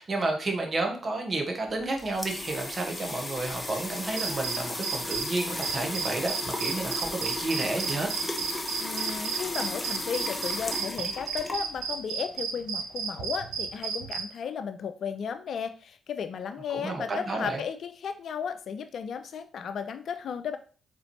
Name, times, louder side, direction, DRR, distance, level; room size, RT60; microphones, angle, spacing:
voice 1, 0.0-8.1 16.7-17.6, right 2 dB, 40° right, 3 dB, 0.9 m, -31 dB
sound 1, 1.7-12.0, left 1 dB, 20° left, 0.7 m, -35 dB
sound 2, 4.2-5.3 5.6-14.2, right 6 dB, 80° right, 0.4 m, -32 dB
voice 2, 8.8-20.6, left 7 dB, 60° left, 10 dB, 0.3 m, -34 dB
3.9 x 3.0 x 2.8 m, 0.39 s
hypercardioid pair, 40°, 0 cm